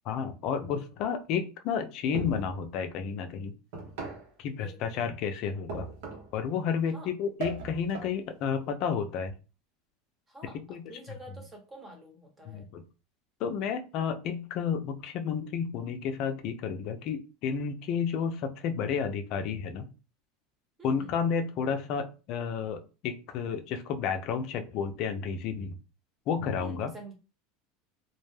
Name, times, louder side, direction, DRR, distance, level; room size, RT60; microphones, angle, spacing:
voice 1, 0.1-3.5 4.4-5.9 6.3-9.3 10.5-10.8 12.5-12.8 13.4-19.9 20.8-25.8 26.3-26.9, left 6 dB, 55° left, 7 dB, 0.5 m, -31 dB
sound 1, 2.1-2.6 3.7-4.3 5.7-6.4 7.4-8.2, right 4 dB, 75° right, 0.8 m, -38 dB
voice 2, 4.6-5.1 6.9-7.1 10.3-12.7 20.8-21.1 26.6-27.1, right 1 dB, 20° right, 2 dB, 1.0 m, -48 dB
2.2 x 2.1 x 3.2 m, 0.32 s
supercardioid pair, 110°, 0 cm